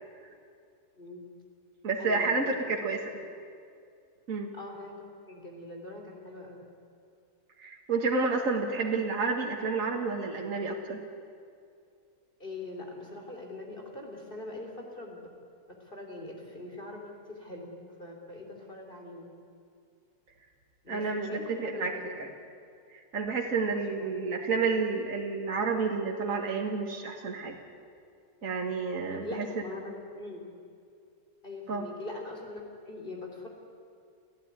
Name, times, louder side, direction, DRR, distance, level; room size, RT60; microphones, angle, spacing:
voice 1, 1.0-1.3 2.0-3.2 4.5-6.6 12.4-15.2 15.8-19.3 20.8-22.0 23.9-24.1 29.1-30.5 31.4-33.5, left 2 dB, 35° left, 1 dB, 3.8 m, -42 dB
voice 2, 1.8-3.1 4.3-4.5 7.6-11.0 20.9-21.9 22.2-22.3 22.9-27.5 28.4-29.5 31.7-31.9, right 4 dB, 60° right, 1 dB, 2.1 m, -30 dB
29.5 x 14.5 x 9.8 m, 2.4 s
omnidirectional pair, 1.6 m